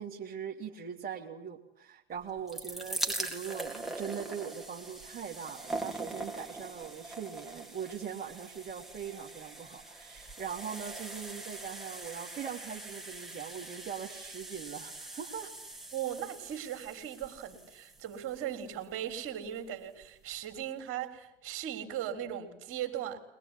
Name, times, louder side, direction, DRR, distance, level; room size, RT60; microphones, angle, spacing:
voice 1, 0.0-15.5 15.7-15.8, right 8 dB, 30° right, 2.8 m, -41 dB
sound 1, 2.2-19.3 20.0-20.1 20.3-20.4, right 2 dB, ahead, 3.8 m, -42 dB
voice 2, 15.9-23.2, right 10 dB, 45° right, 3.8 m, -38 dB
22.0 x 21.0 x 9.9 m
hypercardioid pair, 75°, 29 cm